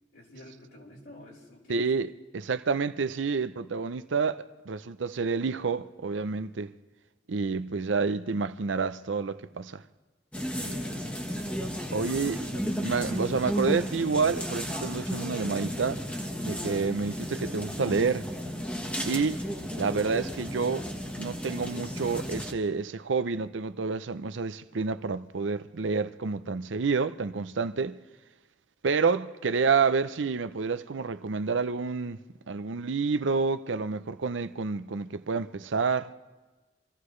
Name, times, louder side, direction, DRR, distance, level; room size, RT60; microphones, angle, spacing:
voice 1, 0.1-1.9 10.6-11.3 11.9-12.5, left 1 dB, 85° left, 4.2 m, -49 dB
voice 2, 1.7-6.7 7.3-9.8 11.9-12.5 12.8-16.0 16.4-18.3 19.0-19.4 19.8-20.9 21.2-28.0 28.8-32.2 32.5-36.1, right 4 dB, 70° right, 0.6 m, -29 dB
sound 1, 10.3-22.5, equal, 5° left, 1.3 m, -34 dB
26.0 x 15.0 x 3.2 m
head